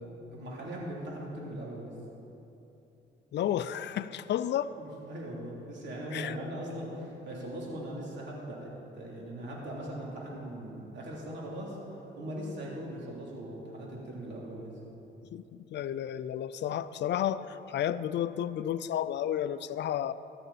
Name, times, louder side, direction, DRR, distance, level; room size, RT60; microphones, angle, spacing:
voice 1, 0.0-2.0 4.8-14.8, right 1 dB, 65° right, -4 dB, 3.1 m, -40 dB
voice 2, 3.3-4.7 6.1-6.4 15.3-15.4 15.7-20.1, left 10 dB, 60° left, 15 dB, 0.5 m, -32 dB
14.5 x 13.0 x 4.2 m, 2.9 s
cardioid pair, 90°, 20 cm